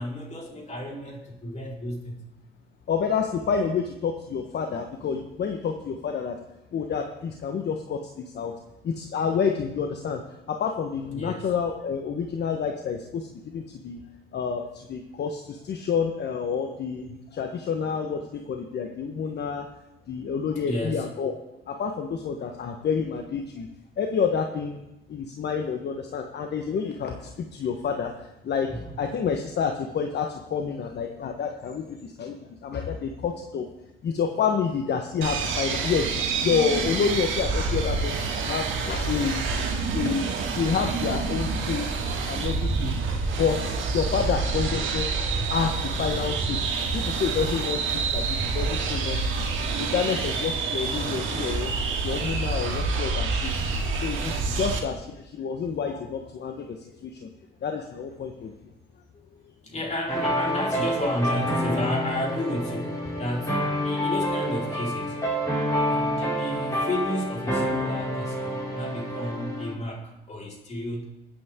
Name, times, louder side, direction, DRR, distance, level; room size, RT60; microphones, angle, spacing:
voice 1, 0.0-2.2 11.1-11.5 20.3-21.1 22.1-22.2 28.7-29.0 45.1-45.2 45.9-46.2 54.3-54.6 59.1-65.2 65.8-71.0, left 1 dB, 35° left, -2 dB, 4.5 m, -32 dB
voice 2, 2.9-6.3 6.7-8.5 8.8-10.2 10.5-13.3 13.5-14.0 14.3-19.7 20.1-21.3 21.7-23.7 24.0-24.8 25.1-28.7 29.0-32.4 32.6-33.6 34.0-40.3 40.5-41.9 42.3-42.9 43.4-46.6 46.9-49.2 49.8-51.7 52.0-53.7 53.9-56.8 57.0-57.3 57.6-58.5, left 6 dB, 60° left, 4 dB, 1.2 m, -29 dB
sound 1, 35.2-54.8, right 4 dB, 80° right, 2.2 m, -27 dB
sound 2, 60.1-69.7, equal, 15° left, 5.1 m, -28 dB
21.0 x 8.5 x 3.7 m, 0.96 s
cardioid pair, 90°, 20 cm